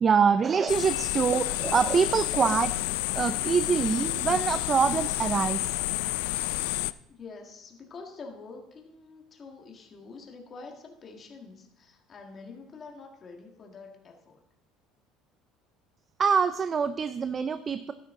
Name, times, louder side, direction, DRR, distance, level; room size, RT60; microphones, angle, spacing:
voice 1, 0.0-2.8 3.1-5.7 16.2-17.9, right 6 dB, 35° right, 12 dB, 0.5 m, -25 dB
sound 1, 0.7-6.9, left 19 dB, 85° left, 0.3 m, -30 dB
voice 2, 7.1-14.4, left 4 dB, 40° left, 2 dB, 1.8 m, -46 dB
12.0 x 10.0 x 3.8 m, 0.80 s
supercardioid pair, 95°, 0 cm